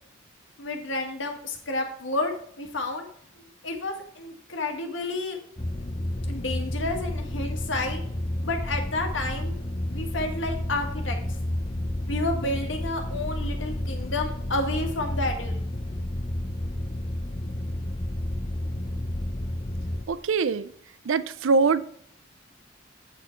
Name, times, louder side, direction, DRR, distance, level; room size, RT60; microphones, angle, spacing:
voice 1, 0.6-3.1 3.6-5.4 6.3-8.0 8.4-9.6 9.9-11.2 12.1-15.6, left 2 dB, 75° left, 1.7 m, -30 dB
sound 1, 5.6-20.0, left 1 dB, 30° left, 0.7 m, -31 dB
voice 2, 20.1-20.7 21.1-21.8, right 4 dB, 85° right, 0.5 m, -23 dB
8.4 x 6.3 x 4.4 m
head